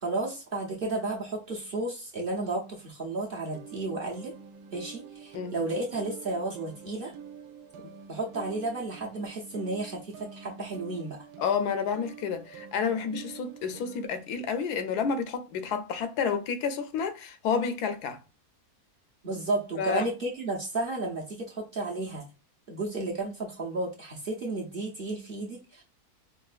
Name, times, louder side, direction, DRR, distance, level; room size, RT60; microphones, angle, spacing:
voice 1, 0.0-4.3 4.7-7.1 8.1-11.2 19.2-22.3 22.7-25.8, right 2 dB, 45° right, 0.8 m, -33 dB
sound 1, 3.4-14.1, right 7 dB, 85° right, 1.2 m, -47 dB
voice 2, 11.4-18.2 19.8-20.1, left 6 dB, 80° left, 1.2 m, -30 dB
4.7 x 2.5 x 2.4 m
omnidirectional pair, 1.7 m